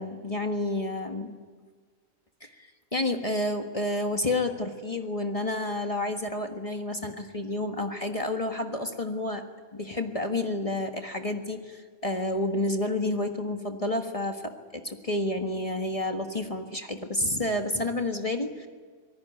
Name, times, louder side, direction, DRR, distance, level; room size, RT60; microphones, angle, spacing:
voice 1, 0.0-1.4 2.4-9.4 9.7-18.7, left 1 dB, 25° left, 4 dB, 1.6 m, -30 dB
26.0 x 19.0 x 9.3 m, 1.5 s
omnidirectional pair, 1.5 m